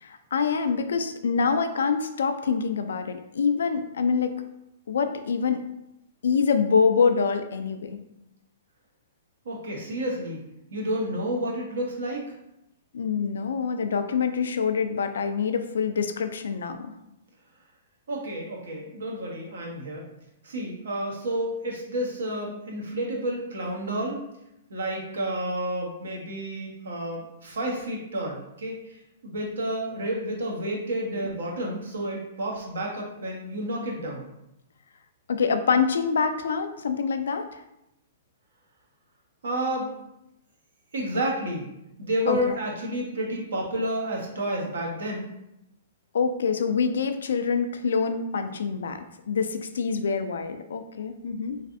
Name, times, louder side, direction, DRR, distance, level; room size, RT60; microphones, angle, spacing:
voice 1, 0.0-4.4 4.9-5.6 6.2-8.0 12.9-16.9 35.3-37.6 42.3-42.5 46.1-49.0 49.3-51.6, left 5 dB, 80° left, 8 dB, 0.3 m, -25 dB
voice 2, 9.4-10.4 10.7-12.2 18.1-20.0 20.4-24.2 24.7-28.8 29.2-34.2 39.4-39.9 40.9-41.7 42.0-45.3, right 1 dB, 80° right, -1 dB, 0.9 m, -30 dB
3.2 x 2.5 x 2.5 m, 0.86 s
hypercardioid pair, 140°, 0 cm